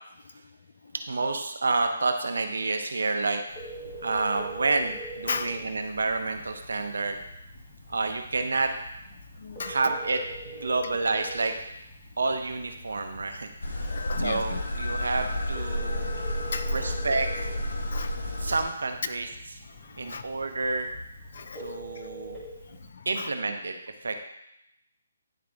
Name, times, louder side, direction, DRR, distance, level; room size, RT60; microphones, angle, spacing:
voice 1, 0.9-3.4 4.0-7.2 7.9-8.7 9.6-11.5 12.2-13.5 14.2-16.1 16.7-17.5 18.4-19.6 20.0-20.9 21.6-22.4 23.0-23.7 24.0-24.2, right 3 dB, 80° right, 6 dB, 0.9 m, -29 dB
Telephone, 3.5-22.9, right 2 dB, 5° left, 1.9 m, -45 dB
voice 2, 9.2-9.9 13.8-14.6 16.4-16.9 17.7-18.1 18.5-18.6 19.7-20.3 21.3-22.1 22.7-23.3, left 5 dB, 60° left, 9 dB, 0.6 m, -37 dB
sound 1, 13.6-18.6, left 1 dB, 75° left, 1.5 m, -31 dB
10.0 x 3.7 x 3.6 m, 0.82 s
hypercardioid pair, 155°, 0 cm